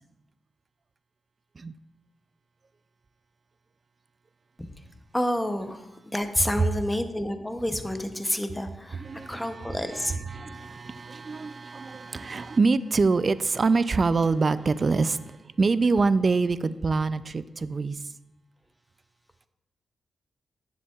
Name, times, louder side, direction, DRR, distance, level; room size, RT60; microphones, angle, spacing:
voice 1, 5.1-10.1, left 1 dB, 10° left, 7 dB, 0.7 m, -29 dB
voice 2, 9.0-18.0, right 4 dB, 40° right, 15 dB, 0.3 m, -25 dB
9.9 x 7.2 x 2.4 m, 0.94 s
cardioid pair, 90°, 0 cm